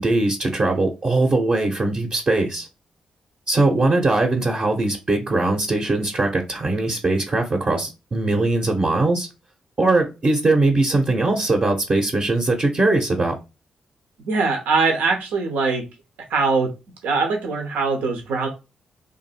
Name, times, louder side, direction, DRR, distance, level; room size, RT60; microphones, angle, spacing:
voice 1, 0.0-2.7 3.5-9.3 9.8-13.3, right 2 dB, 45° right, 0.9 m, -20 dB
voice 2, 14.3-15.8 16.3-16.7 17.0-18.5, right 4 dB, 80° right, 0.8 m, -21 dB
2.6 x 2.6 x 4.2 m
supercardioid pair, 45°, 3 cm